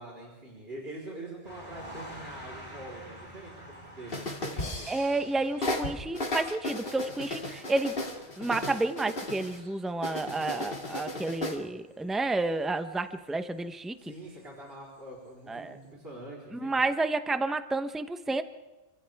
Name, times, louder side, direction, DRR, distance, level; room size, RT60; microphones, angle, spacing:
voice 1, 0.0-4.9 14.0-16.8, right 1 dB, 70° right, -4 dB, 4.5 m, -44 dB
sound 1, 1.4-13.9 14.4-14.5, equal, 35° right, 5.4 m, -50 dB
sound 2, 4.1-5.3 5.6-9.6 10.0-11.6, left 1 dB, 65° left, 2.6 m, -35 dB
voice 2, 4.9-8.0 8.4-14.0 15.5-15.8 16.5-18.4, right 2 dB, ahead, 9 dB, 0.9 m, -30 dB
29.5 x 25.5 x 3.6 m, 1.1 s
omnidirectional pair, 1.1 m